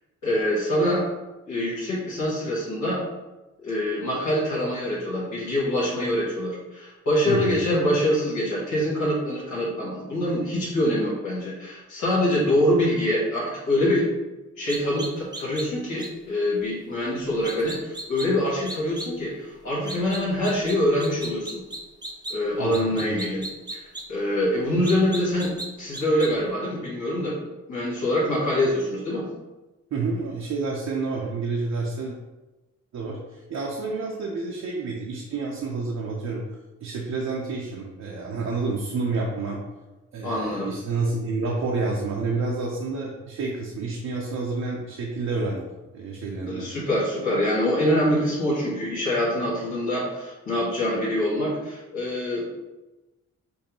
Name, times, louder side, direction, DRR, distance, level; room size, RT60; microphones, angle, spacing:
voice 1, 0.2-1.0 1.5-3.0 3.6-14.1 14.6-21.6 22.3-23.5 23.7-25.5 25.8-27.4 27.7-29.2 40.2-40.7 46.5-52.6, left 1 dB, 85° left, -7 dB, 1.4 m, -25 dB
voice 2, 7.3-7.6 22.6-23.1 29.9-32.2 32.9-36.4 36.8-39.6 40.1-45.6 45.9-46.7, right 3 dB, 65° right, -2 dB, 0.7 m, -29 dB
sound 1, 14.7-15.6 16.0-16.1 17.4-18.3 18.7-19.1 19.9-20.7 21.0-22.3 22.7-24.0 24.8-25.7 25.9-26.3, right 2 dB, 15° right, 0.6 m, -35 dB
5.3 x 2.1 x 3.0 m, 1.1 s
cardioid pair, 85°, 30 cm